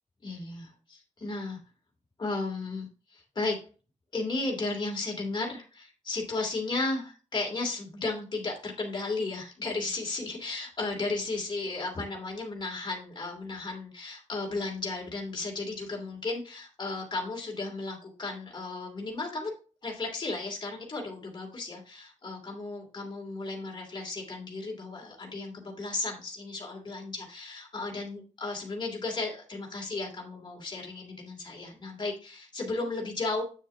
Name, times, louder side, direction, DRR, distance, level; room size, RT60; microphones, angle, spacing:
voice 1, 0.2-1.6 2.2-3.6 4.1-19.5 19.8-33.4, left 3 dB, 35° left, 0 dB, 3.1 m, -34 dB
8.9 x 7.2 x 2.8 m, 0.35 s
wide cardioid pair, 165°, 13 cm